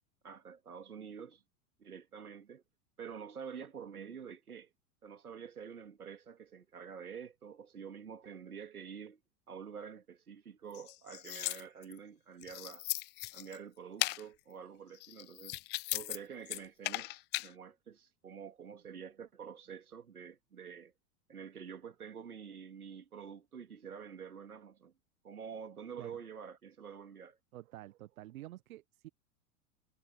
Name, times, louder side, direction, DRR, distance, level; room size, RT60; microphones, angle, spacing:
voice 1, 0.2-1.4 1.8-2.6 3.0-4.7 5.0-9.2 9.5-12.9 13.3-15.6 15.9-20.9 21.3-24.9 25.2-27.4, right 7 dB, 85° right, 2.6 m, -48 dB
sound 1, 10.7-12.0 12.4-13.6 14.0-14.2 14.9-16.2 16.5-17.5, left 21 dB, 25° left, 0.4 m, -37 dB
voice 2, 27.5-29.1, right 15 dB, 70° right, 1.6 m, -49 dB
hypercardioid pair, 90°, 43 cm